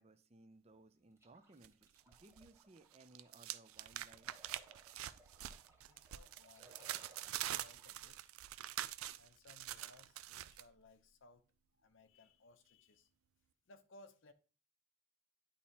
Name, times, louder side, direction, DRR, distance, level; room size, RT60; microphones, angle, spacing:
voice 1, 0.0-4.3, right 2 dB, 30° right, 0.5 m, -63 dB
sound 1, 1.2-8.1, right 2 dB, 15° right, 1.0 m, -66 dB
sound 2, 1.6-2.5 2.8-10.6, right 13 dB, 85° right, 0.4 m, -45 dB
voice 2, 5.9-8.2 9.2-11.4 11.8-13.1 13.7-14.3, left 2 dB, 65° left, 0.7 m, -63 dB
10.0 x 4.2 x 2.9 m
head